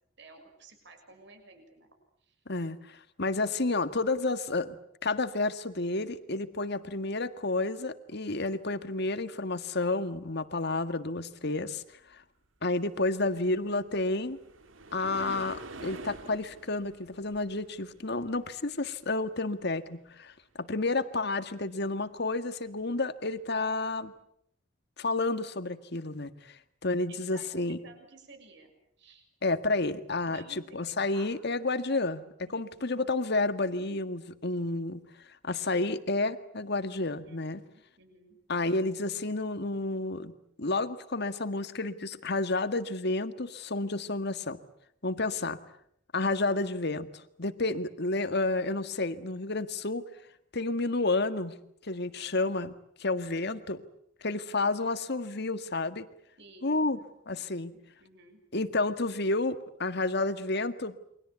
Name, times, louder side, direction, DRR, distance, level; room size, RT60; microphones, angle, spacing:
voice 1, 0.2-1.9 2.2-2.3 27.1-29.2 30.2-31.7 32.5-33.0 37.2-38.4 45.4-45.5 56.4-58.4, right 3 dB, 60° right, 6 dB, 6.5 m, -55 dB
voice 2, 2.5-4.7 5.0-11.8 12.1-12.2 12.6-14.4 14.9-24.1 25.0-27.8 29.4-30.4 30.7-35.0 35.4-37.6 38.5-40.3 40.6-44.6 45.0-45.6 46.1-50.0 50.5-51.5 51.8-53.8 54.2-56.1 56.6-57.0 57.3-57.7 58.5-61.0, left 2 dB, 55° left, 11 dB, 1.8 m, -30 dB
sound 1, 13.6-18.9 22.8-22.9 23.5-23.6, right 3 dB, 80° right, 2.1 m, -45 dB
29.0 x 24.0 x 8.3 m, 0.70 s
head